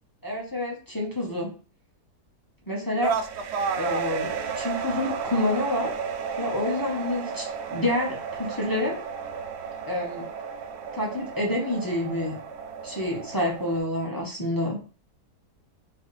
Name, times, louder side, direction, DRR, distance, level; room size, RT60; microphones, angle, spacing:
voice 1, 0.2-1.5 2.7-3.1 3.8-5.9 6.4-7.4 7.7-8.9 9.9-10.2 10.9-12.3 12.8-14.8, left 1 dB, 15° left, -3 dB, 1.0 m, -28 dB
sound 1, 3.0-13.8, right 6 dB, 85° right, 0.6 m, -33 dB
4.5 x 3.3 x 3.4 m, 0.37 s
omnidirectional pair, 1.7 m